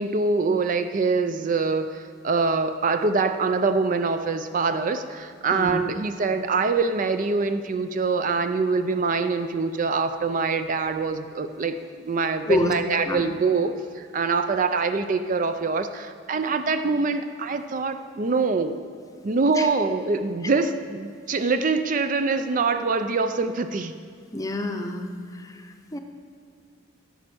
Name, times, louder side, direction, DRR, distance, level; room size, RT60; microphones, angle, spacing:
voice 1, 0.0-11.8 12.0-18.8 19.2-23.9, right 4 dB, 40° right, 9 dB, 0.4 m, -24 dB
voice 2, 24.3-26.0, left 2 dB, 15° left, 5 dB, 0.6 m, -28 dB
12.0 x 5.3 x 7.7 m, 2.3 s
head